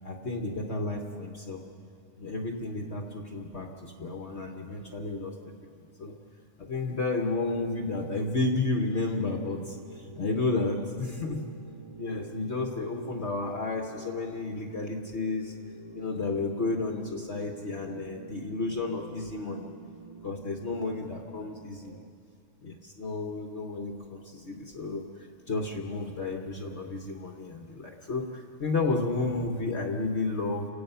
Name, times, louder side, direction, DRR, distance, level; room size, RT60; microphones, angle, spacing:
voice 1, 0.0-1.6 2.2-5.3 5.8-6.1 6.6-11.5 12.0-15.5 15.9-19.7 20.2-22.0 22.6-25.0 25.5-30.7, left 3 dB, 50° left, 2 dB, 1.4 m, -32 dB
sound 1, 9.0-22.1, right 2 dB, 50° right, 0.3 m, -49 dB
30.0 x 17.0 x 5.7 m, 2.4 s
omnidirectional pair, 1.6 m